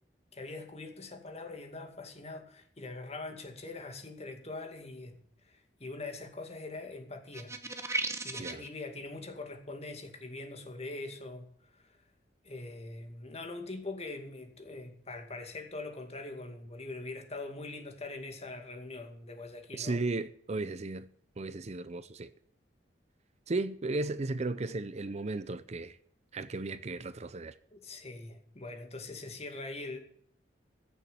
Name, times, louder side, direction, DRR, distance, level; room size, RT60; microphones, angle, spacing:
voice 1, 0.3-7.5 7.9-12.0 12.4-20.0 27.7-30.0, left 2 dB, 35° left, 2.3 m, -43 dB
sound 1, 7.3-8.7, right 3 dB, 15° right, 1.2 m, -35 dB
voice 2, 19.7-21.1 21.4-22.3 23.5-26.0 26.3-27.5, right 3 dB, 40° right, 0.6 m, -35 dB
14.5 x 7.2 x 8.1 m
head